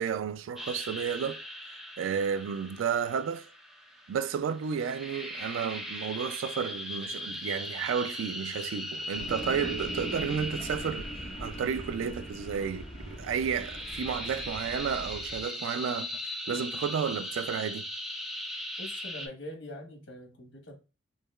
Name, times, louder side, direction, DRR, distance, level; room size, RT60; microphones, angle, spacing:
voice 1, 0.0-1.4 2.0-3.5 4.1-11.1 11.4-17.9, right 7 dB, 85° right, 0.3 m, -32 dB
sound 1, 0.6-19.3, left 1 dB, ahead, 0.5 m, -39 dB
sound 2, 9.1-15.5, equal, 25° left, 1.3 m, -42 dB
voice 2, 18.8-20.8, left 1 dB, 75° left, 1.2 m, -43 dB
4.7 x 2.2 x 2.3 m
head